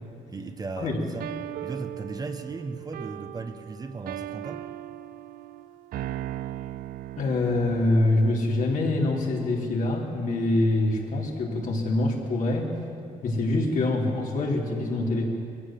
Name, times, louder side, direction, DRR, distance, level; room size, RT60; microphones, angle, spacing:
voice 1, 0.3-1.3 1.6-4.7, right 3 dB, 25° right, 7 dB, 1.1 m, -36 dB
sound 1, 1.2-8.2, right 13 dB, 85° right, 0.5 m, -38 dB
voice 2, 7.2-12.7 13.2-15.2, left 2 dB, 65° left, -1 dB, 3.5 m, -25 dB
22.0 x 15.5 x 7.6 m, 2.5 s
cardioid pair, 125°, 15 cm